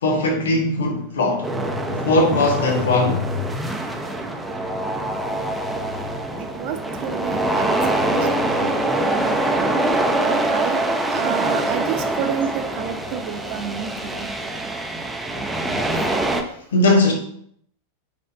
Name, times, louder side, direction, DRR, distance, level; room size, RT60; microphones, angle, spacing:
voice 1, 0.0-1.4 1.9-3.2 16.7-17.1, left 2 dB, 65° left, 1.4 m, -19 dB
sound 1, 1.4-16.4, right 1 dB, 5° right, 0.8 m, -24 dB
voice 2, 6.4-9.7 10.2-10.8 11.1-14.3, right 8 dB, 45° right, 0.9 m, -30 dB
8.8 x 5.2 x 2.7 m
figure-of-eight pair, 90°, 0 cm